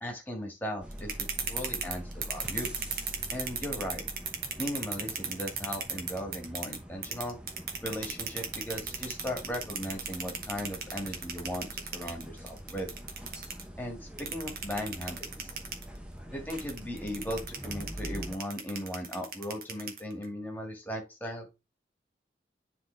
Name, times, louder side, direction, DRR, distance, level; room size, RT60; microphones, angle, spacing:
voice 1, 0.0-2.7 3.3-4.0 4.6-7.4 7.8-12.9 13.8-15.5 16.3-21.5, equal, 10° left, 1 dB, 1.7 m, -37 dB
sound 1, 0.8-18.3, equal, 5° right, 0.8 m, -44 dB
sound 2, 0.9-6.8 7.0-13.6 14.2-15.8 16.5-20.2, right 6 dB, 50° right, 1.4 m, -35 dB
9.9 x 3.7 x 3.3 m, 0.25 s
head